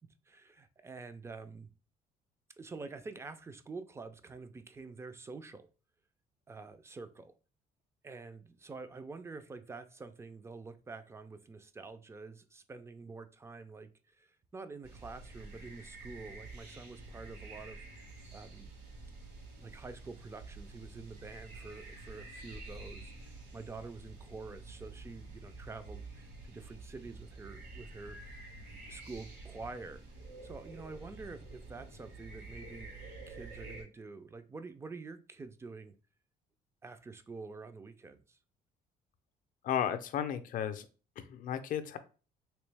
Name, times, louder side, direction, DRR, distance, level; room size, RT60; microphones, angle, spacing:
voice 1, 0.3-1.7 2.6-5.7 6.5-7.3 8.0-18.0 18.3-18.7 19.6-28.4 28.9-30.0 30.4-32.9 33.3-36.0 36.8-38.4, right 3 dB, 15° right, 0.4 m, -47 dB
sound 1, 14.8-33.8, right 2 dB, 70° right, 1.7 m, -49 dB
voice 2, 39.6-40.9 41.2-42.0, left 9 dB, 55° left, 0.5 m, -34 dB
3.2 x 3.1 x 3.3 m
cardioid pair, 110°, 17 cm